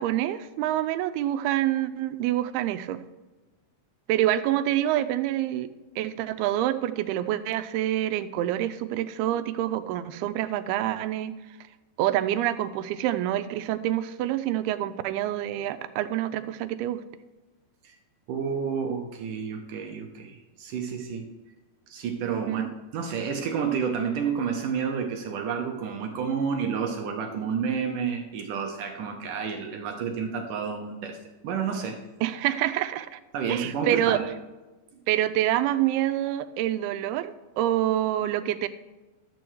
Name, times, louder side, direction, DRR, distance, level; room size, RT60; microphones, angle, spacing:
voice 1, 0.0-3.0 4.1-5.7 6.0-11.3 12.0-17.0 22.5-22.7 32.2-33.2 33.5-34.2 35.1-38.7, right 13 dB, 90° right, 11 dB, 2.5 m, -27 dB
voice 2, 18.3-21.3 21.9-22.7 22.9-31.2 31.4-32.0 33.3-34.3, right 6 dB, 70° right, 3 dB, 2.1 m, -30 dB
12.0 x 7.7 x 4.6 m, 1.2 s
omnidirectional pair, 4.4 m